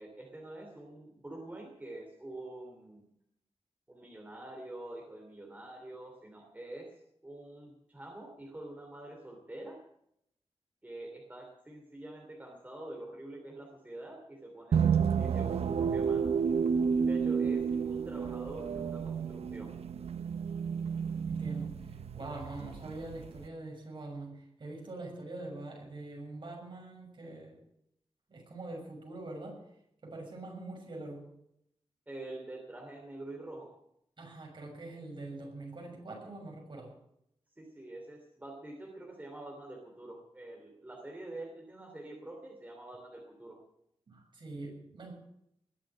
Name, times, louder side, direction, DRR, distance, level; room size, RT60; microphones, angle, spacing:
voice 1, 0.0-3.1 3.9-6.9 7.2-9.8 10.8-16.4 17.0-19.8 32.1-33.7 37.6-43.6, right 1 dB, 15° right, 1 dB, 3.0 m, -46 dB
sound 1, 14.7-23.5, right 6 dB, 85° right, 0.7 m, -31 dB
voice 2, 21.2-27.6 28.3-29.6 30.0-31.3 34.2-36.9 44.1-45.1, right 2 dB, 50° right, 0 dB, 7.0 m, -44 dB
20.5 x 7.5 x 8.6 m, 0.76 s
wide cardioid pair, 125°, 10 cm